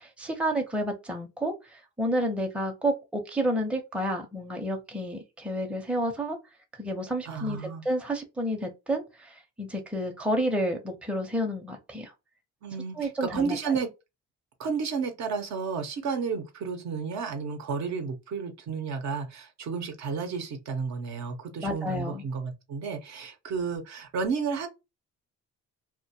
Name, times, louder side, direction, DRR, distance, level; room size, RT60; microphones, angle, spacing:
voice 1, 0.0-6.4 6.8-12.1 13.0-13.8 21.6-22.2, equal, 5° right, 0.5 m, -30 dB
voice 2, 7.3-7.8 12.6-13.9 14.6-24.7, right 5 dB, 65° right, 0.7 m, -32 dB
2.2 x 2.1 x 2.7 m
cardioid pair, 90°, 30 cm